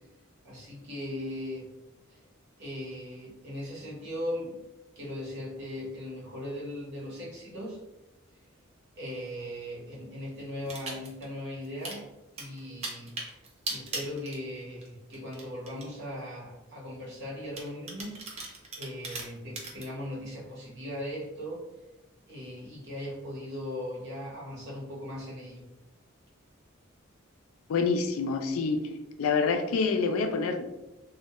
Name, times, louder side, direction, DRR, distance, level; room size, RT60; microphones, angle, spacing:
voice 1, 0.4-1.7 2.1-2.2 2.6-4.6 5.0-7.8 9.0-12.1 12.3-13.2 13.7-18.2 18.8-21.7 22.2-25.6, left 1 dB, 55° right, -4 dB, 0.9 m, -38 dB
sound 1, 10.7-11.3 11.6-12.0 12.4-14.9 15.1-15.9 16.5-16.6 17.6-19.9, right 3 dB, 30° right, 0.4 m, -38 dB
voice 2, 27.7-28.8 29.2-30.7, left 4 dB, 80° left, 6 dB, 0.3 m, -26 dB
2.2 x 2.1 x 2.8 m, 0.97 s
head